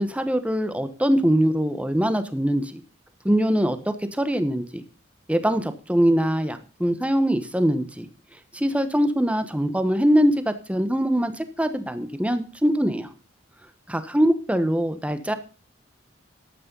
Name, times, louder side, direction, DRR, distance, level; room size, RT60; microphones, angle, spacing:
voice 1, 0.0-2.8 3.2-4.8 5.3-8.1 8.5-13.1 13.9-15.3, equal, 5° right, 10 dB, 1.1 m, -23 dB
12.5 x 8.7 x 5.4 m, 0.35 s
head